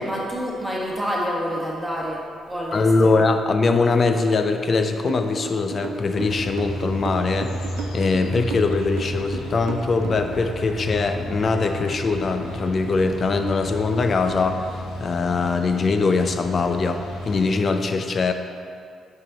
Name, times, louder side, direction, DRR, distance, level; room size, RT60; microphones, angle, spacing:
voice 1, 0.0-2.2 2.5-3.2, equal, 5° right, -5 dB, 1.5 m, -28 dB
voice 2, 2.7-7.7 7.9-18.3, left 4 dB, 50° left, 6 dB, 0.5 m, -22 dB
sound 1, 5.1-10.3, right 7 dB, 80° right, 0.4 m, -34 dB
sound 2, 6.1-17.6, equal, 85° left, 0.8 m, -32 dB
5.7 x 5.3 x 4.0 m, 2.4 s
supercardioid pair, 55°, 0 cm